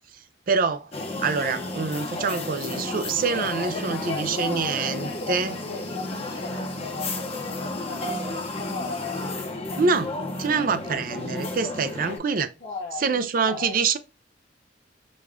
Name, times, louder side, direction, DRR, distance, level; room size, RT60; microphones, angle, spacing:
voice 1, 0.5-0.9 1.2-5.5 9.8-10.1 10.4-12.5 13.0-14.0, right 5 dB, 45° right, 0.4 m, -25 dB
sound 1, 0.9-12.2, left 2 dB, 30° left, 0.8 m, -32 dB
voice 2, 3.3-9.2 12.3-13.8, left 3 dB, 50° left, 1.2 m, -37 dB
5.0 x 2.3 x 3.6 m
head